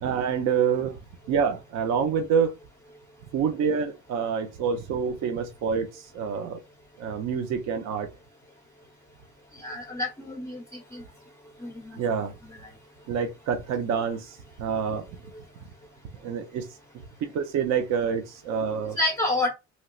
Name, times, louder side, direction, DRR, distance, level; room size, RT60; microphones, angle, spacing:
voice 1, 0.0-1.0 1.3-2.5 3.3-6.6 7.0-8.1 12.0-12.3 13.1-15.1 16.2-16.7 17.2-19.0, right 6 dB, 60° right, 0.6 m, -27 dB
voice 2, 9.6-10.6 10.9-11.0 11.6-12.0 19.0-19.5, left 2 dB, 10° left, 0.8 m, -28 dB
3.1 x 3.0 x 2.3 m
cardioid pair, 120°, 31 cm